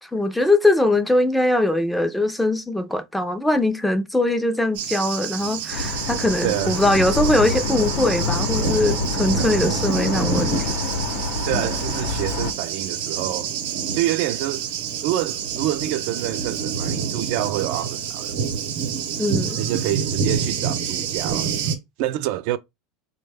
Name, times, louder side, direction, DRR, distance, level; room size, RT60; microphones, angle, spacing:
voice 1, 0.0-10.7 19.2-19.6, left 1 dB, 5° left, 0.4 m, -21 dB
Thunder, 4.7-21.7, right 7 dB, 80° right, 0.8 m, -27 dB
sound 1, 5.7-12.5, left 4 dB, 75° left, 0.7 m, -26 dB
voice 2, 6.4-6.8 9.3-9.9 11.5-13.5 13.9-14.7 15.0-18.3 19.6-21.5 22.0-22.6, right 13 dB, 65° right, 0.3 m, -27 dB
4.0 x 2.1 x 3.3 m
supercardioid pair, 135°, 0 cm